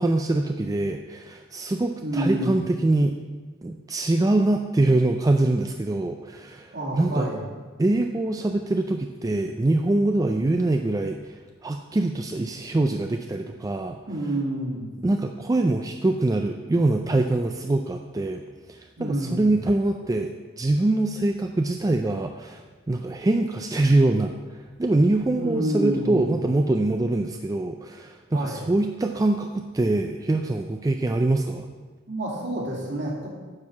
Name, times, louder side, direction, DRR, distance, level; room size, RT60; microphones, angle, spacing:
voice 1, 0.0-3.2 3.6-7.3 7.8-14.3 15.0-18.4 18.7-31.7, right 2 dB, 15° right, 5 dB, 0.3 m, -24 dB
voice 2, 2.0-2.5 6.7-7.4 14.1-14.9 19.0-19.4 25.4-26.3 28.3-28.6 32.1-33.3, right 1 dB, 55° right, -3 dB, 2.4 m, -28 dB
9.7 x 4.6 x 7.1 m, 1.4 s
head